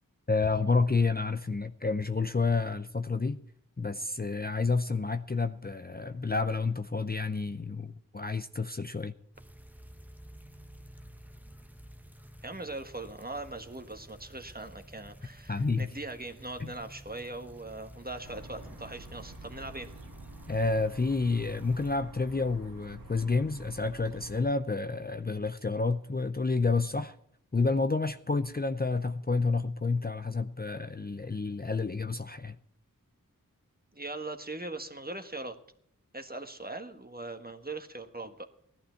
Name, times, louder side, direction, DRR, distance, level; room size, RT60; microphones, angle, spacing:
voice 1, 0.3-3.4 3.8-9.1 15.5-15.9 16.6-16.7 20.5-27.2 27.5-32.6, left 3 dB, 30° left, 0.6 m, -29 dB
sound 1, 9.3-22.0, equal, 5° right, 1.0 m, -51 dB
voice 2, 12.4-19.9 33.9-35.6 36.1-38.5, right 2 dB, 25° right, 1.4 m, -40 dB
sound 2, 18.2-24.4, right 2 dB, 90° right, 1.8 m, -48 dB
17.0 x 11.5 x 4.5 m
wide cardioid pair, 40°, 34 cm